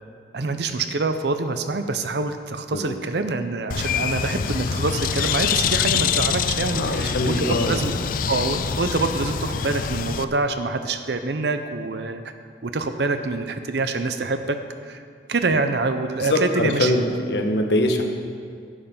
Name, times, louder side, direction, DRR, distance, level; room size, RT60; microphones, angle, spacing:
voice 1, 0.3-7.9 8.3-12.2 12.6-14.6 14.8-15.0 15.3-17.0, right 3 dB, 70° right, 8 dB, 0.7 m, -25 dB
Bird, 3.7-10.2, left 7 dB, 50° left, 0.3 m, -25 dB
voice 2, 6.7-7.7 16.2-18.0, left 1 dB, 70° left, 4 dB, 1.1 m, -23 dB
11.0 x 7.7 x 5.5 m, 2.2 s
head